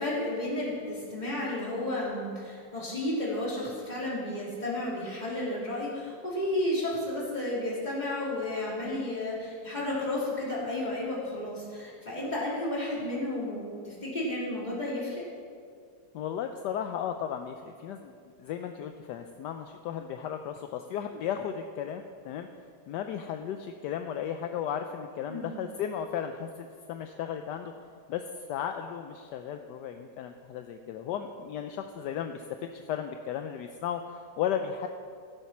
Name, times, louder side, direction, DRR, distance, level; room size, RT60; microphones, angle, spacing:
voice 1, 0.0-15.2 25.3-25.6, left 1 dB, 25° left, -6 dB, 3.1 m, -32 dB
voice 2, 16.1-22.5 22.9-27.7 28.1-34.9, left 8 dB, 75° left, 6 dB, 1.1 m, -35 dB
15.0 x 7.3 x 5.9 m, 2.2 s
omnidirectional pair, 1.9 m